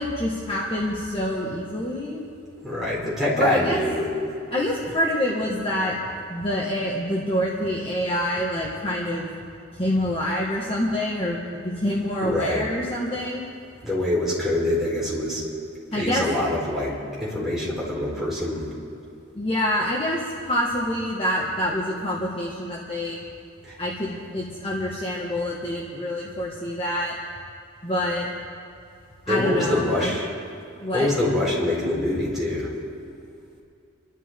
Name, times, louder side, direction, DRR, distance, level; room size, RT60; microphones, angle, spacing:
voice 1, 0.0-2.2 3.4-3.8 4.5-6.0 6.3-9.2 9.8-13.4 15.9-16.2 19.3-23.2 23.8-27.1 27.8-28.3 29.3-30.1 30.8-31.1, left 1 dB, 25° left, -4 dB, 1.6 m, -26 dB
voice 2, 2.6-4.1 12.2-12.7 13.8-15.4 15.9-18.6 23.6-23.8 29.3-30.3 30.9-32.7, left 1 dB, ahead, -7 dB, 4.5 m, -25 dB
28.0 x 12.0 x 3.8 m, 2.5 s
head